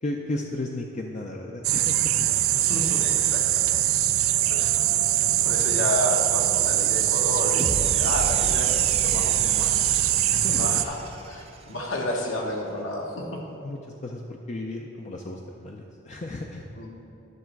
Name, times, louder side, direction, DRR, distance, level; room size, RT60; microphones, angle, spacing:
voice 1, 0.0-2.3 3.2-3.4 5.5-5.8 10.3-10.9 12.1-12.2 13.6-16.7, left 2 dB, 35° left, 0 dB, 0.5 m, -34 dB
sound 1, 1.6-10.8, right 13 dB, 80° right, 0.4 m, -22 dB
voice 2, 2.5-3.8 4.1-10.1 10.5-11.0 11.3-13.4 16.8-16.9, left 1 dB, 70° left, 0 dB, 1.4 m, -31 dB
sound 2, 7.6-11.9, right 2 dB, 30° right, 0.6 m, -34 dB
11.0 x 6.5 x 4.6 m, 2.9 s
head